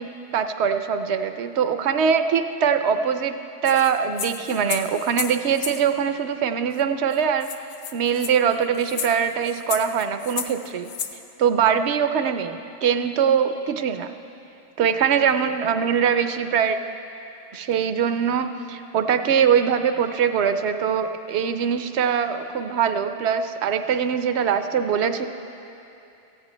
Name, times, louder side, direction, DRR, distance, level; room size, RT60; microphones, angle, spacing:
voice 1, 0.0-3.4 3.6-7.5 7.9-10.9 11.4-14.1 14.8-16.8 17.5-25.3, right 7 dB, 70° right, 8 dB, 0.8 m, -22 dB
sound 1, 3.7-5.8 6.8-6.9 7.1-7.2 7.4-11.2, left 7 dB, 60° left, 0.7 m, -33 dB
17.0 x 15.5 x 2.2 m, 2.8 s
omnidirectional pair, 1.3 m